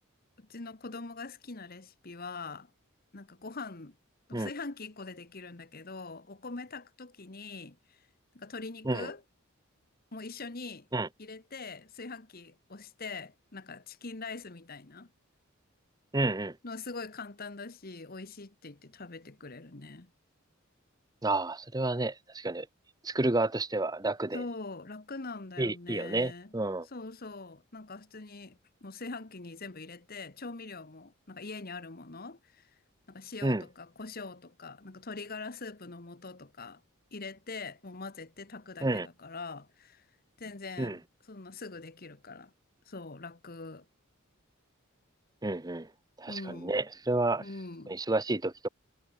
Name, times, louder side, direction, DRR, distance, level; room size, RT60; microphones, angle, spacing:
voice 1, 0.4-2.7 3.1-4.0 4.3-8.0 8.3-9.2 10.1-10.9 11.2-15.1 16.6-20.1 24.3-26.5 26.8-32.7 33.1-36.8 37.1-40.1 40.4-41.0 41.3-42.5 42.9-43.8 46.3-46.8 47.4-47.9, left 3 dB, 45° left, 1.3 m, -43 dB
voice 2, 16.1-16.6 21.2-22.7 23.0-24.4 25.6-26.9 33.4-33.6 38.8-39.1 40.8-41.0 45.4-45.9 46.2-47.5 47.9-48.7, right 2 dB, 20° right, 0.9 m, -30 dB
head